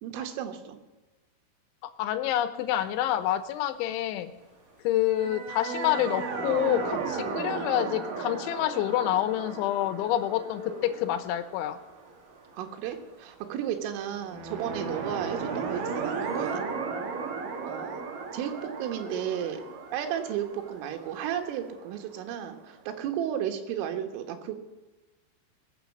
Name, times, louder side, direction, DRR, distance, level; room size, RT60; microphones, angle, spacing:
voice 1, 0.0-0.8 7.5-7.7 12.5-16.6 17.6-18.0 18.3-19.6 19.9-24.6, right 9 dB, 85° right, 5 dB, 3.9 m, -33 dB
voice 2, 1.8-4.3 4.8-11.8, left 12 dB, 80° left, 12 dB, 3.1 m, -27 dB
sound 1, 2.6-21.7, left 3 dB, 30° left, 3.6 m, -53 dB
sound 2, 5.1-12.3 14.2-22.0, right 5 dB, 55° right, 2.6 m, -35 dB
20.5 x 7.4 x 7.2 m, 1.2 s
omnidirectional pair, 5.7 m